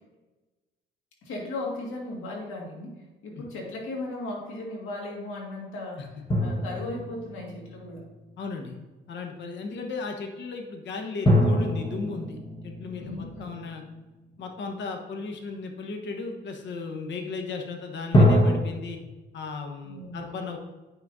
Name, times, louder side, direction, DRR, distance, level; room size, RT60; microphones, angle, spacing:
voice 1, 1.2-6.1 6.4-8.1 13.0-13.7 19.8-20.5, left 2 dB, 90° left, -1 dB, 1.9 m, -37 dB
sound 1, 6.3-8.3 11.3-14.5 18.1-18.6, equal, 25° left, 1.4 m, -24 dB
voice 2, 8.4-8.8 9.1-13.8 14.4-19.0 19.3-20.6, left 4 dB, 65° left, 3 dB, 1.1 m, -35 dB
8.8 x 5.9 x 2.7 m, 1.2 s
cardioid pair, 90°, 20 cm